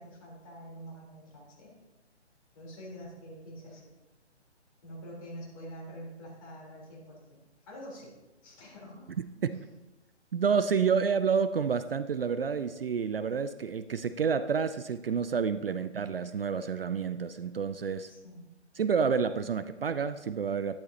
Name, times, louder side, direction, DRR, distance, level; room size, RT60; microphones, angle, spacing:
voice 1, 0.0-1.7 2.5-3.9 4.8-7.4 7.7-9.1 18.1-18.5, equal, 30° left, -4 dB, 3.8 m, -46 dB
voice 2, 9.2-9.7 10.3-18.1 18.8-20.8, right 6 dB, 55° right, 13 dB, 0.5 m, -29 dB
12.0 x 11.5 x 2.9 m, 1.1 s
figure-of-eight pair, 140°, 35 cm